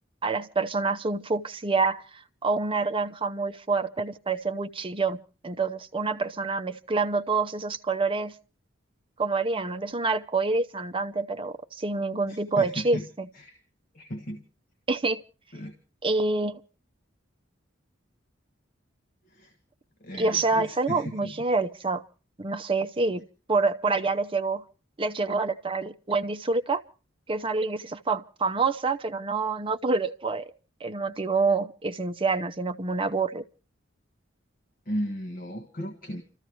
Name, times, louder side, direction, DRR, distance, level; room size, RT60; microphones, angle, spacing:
voice 1, 0.2-8.3 9.2-13.3 14.9-15.2 16.0-16.6 20.2-22.0 22.4-24.6 25.0-26.8 27.3-30.5 30.8-33.4, right 3 dB, 25° right, 0.7 m, -27 dB
voice 2, 12.3-13.1 13.3-13.6 13.9-14.5 15.5-15.8 19.3-19.5 20.0-21.4 34.8-36.2, equal, 45° left, 1.4 m, -36 dB
29.5 x 14.0 x 3.0 m
head